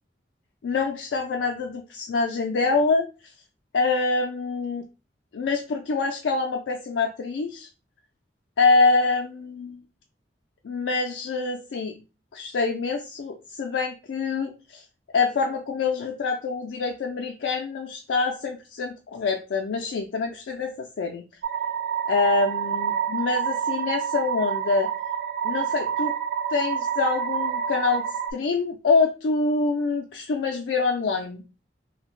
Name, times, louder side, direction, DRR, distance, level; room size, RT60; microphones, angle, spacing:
voice 1, 0.6-3.1 3.7-4.9 5.3-7.7 8.6-9.8 10.6-11.9 12.3-14.8 15.1-21.2 22.1-24.9 25.4-26.2 26.5-28.0 28.3-31.4, left 4 dB, 90° left, 2 dB, 0.4 m, -25 dB
sound 1, 21.4-28.3, right 8 dB, 55° right, 0.4 m, -28 dB
2.7 x 2.1 x 3.0 m, 0.31 s
head